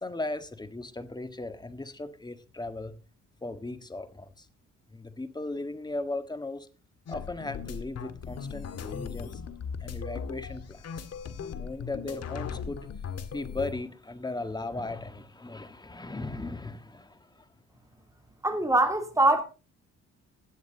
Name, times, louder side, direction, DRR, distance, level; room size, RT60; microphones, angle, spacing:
voice 1, 0.0-2.9 3.4-4.5 4.9-6.7 7.1-9.4 9.8-11.0 11.5-12.8 13.3-17.5, left 2 dB, 15° left, 1.6 m, -37 dB
sound 1, 7.1-13.7, left 6 dB, 60° left, 1.9 m, -38 dB
voice 2, 18.4-19.4, right 2 dB, 10° right, 2.9 m, -23 dB
16.5 x 9.3 x 3.9 m
cardioid pair, 100°, 29 cm